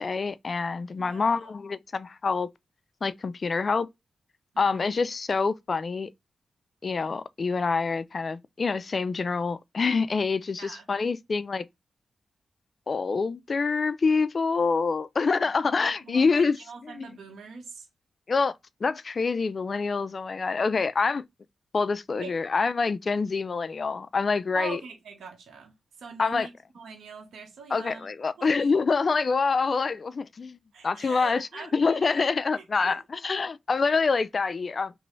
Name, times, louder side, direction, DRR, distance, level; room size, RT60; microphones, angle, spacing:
voice 1, 0.0-2.5 3.0-3.9 4.6-6.1 6.8-11.7 12.9-16.6 17.0-17.1 18.3-18.6 18.8-21.2 21.7-24.8 26.2-26.5 27.7-30.6 30.8-34.9, left 4 dB, 55° left, 0.4 m, -26 dB
voice 2, 1.0-1.5 4.5-4.9 10.6-10.8 15.4-15.5 16.0-17.9 22.2-22.3 24.5-28.1 28.4-28.5 30.7-33.0, right 5 dB, 85° right, 0.9 m, -43 dB
3.0 x 2.6 x 3.0 m
cardioid pair, 55°, 0 cm